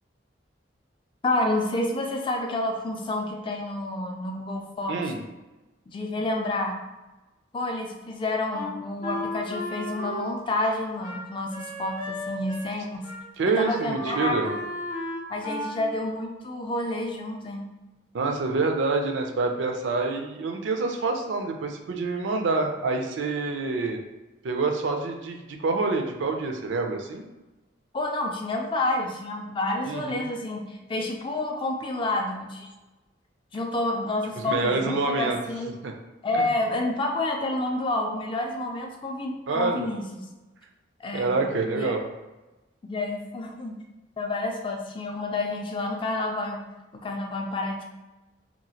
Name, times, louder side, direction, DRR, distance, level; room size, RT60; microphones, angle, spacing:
voice 1, 1.2-5.0 5.9-6.8 7.5-13.1 13.6-14.5 15.3-17.7 27.9-32.7 33.5-35.8 36.2-40.1 41.0-41.3 41.7-41.9 42.8-43.8 44.2-46.6 46.9-47.8, left 2 dB, 25° left, 2 dB, 0.3 m, -29 dB
voice 2, 4.9-5.2 13.4-14.5 18.1-24.0 24.4-27.2 29.8-30.3 34.4-35.4 35.8-35.9 39.5-39.9 41.1-42.0, right 3 dB, 75° right, 4 dB, 0.4 m, -27 dB
Wind instrument woodwind instrument, 8.5-12.8 13.0-13.2 13.5-15.8, left 1 dB, 45° left, 0.7 m, -35 dB
2.9 x 2.4 x 2.8 m, 1.1 s
head